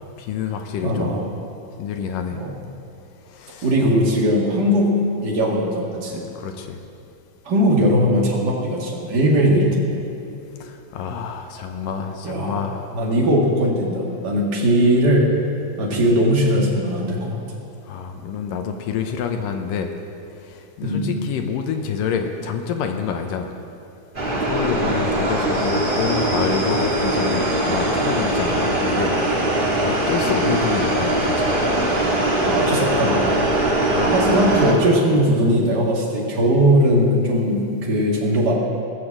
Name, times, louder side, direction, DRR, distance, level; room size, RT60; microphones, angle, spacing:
voice 1, 0.2-1.2 1.8-2.4 3.3-3.7 6.1-6.8 10.6-12.9 15.9-16.1 17.9-19.9 20.8-23.5 24.4-29.1 29.8-31.6 33.9-34.2, left 6 dB, 75° left, 5 dB, 2.3 m, -27 dB
voice 2, 0.8-1.3 2.4-2.5 3.6-4.9 5.2-6.2 7.4-10.1 12.2-15.3 15.8-17.4 20.8-21.1 32.4-33.2 34.1-38.5, equal, 35° right, -3 dB, 2.1 m, -19 dB
sound 1, 24.1-34.7, right 1 dB, 50° right, 0.6 m, -21 dB
18.0 x 7.0 x 7.4 m, 2.6 s
omnidirectional pair, 4.2 m